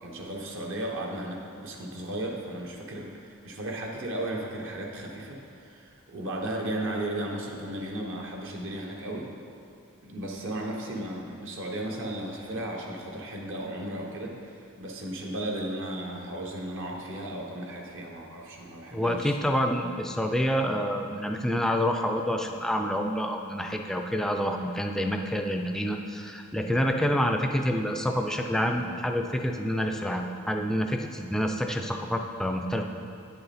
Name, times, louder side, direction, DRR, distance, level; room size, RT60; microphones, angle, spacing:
voice 1, 0.0-9.3 10.0-19.5, right 1 dB, 60° right, -1 dB, 1.0 m, -35 dB
voice 2, 18.9-32.8, equal, ahead, 3 dB, 0.4 m, -28 dB
9.0 x 6.7 x 4.1 m, 2.6 s
head